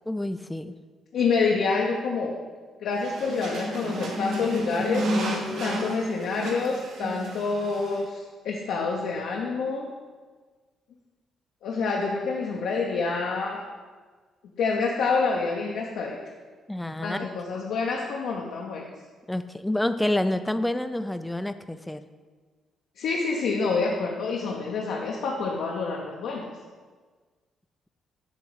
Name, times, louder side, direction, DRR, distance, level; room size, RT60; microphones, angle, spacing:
voice 1, 0.1-0.7 16.7-17.3 19.3-22.0, left 1 dB, 5° left, 10 dB, 0.3 m, -28 dB
voice 2, 1.1-2.4 2.8-5.1 5.6-9.9 11.6-13.6 14.6-16.2 17.0-18.9 23.0-26.5, left 4 dB, 80° left, -2 dB, 0.7 m, -27 dB
sound 1, 2.9-8.0, equal, 75° right, 1.0 m, -31 dB
7.4 x 3.0 x 4.6 m, 1.4 s
cardioid pair, 90°, 0 cm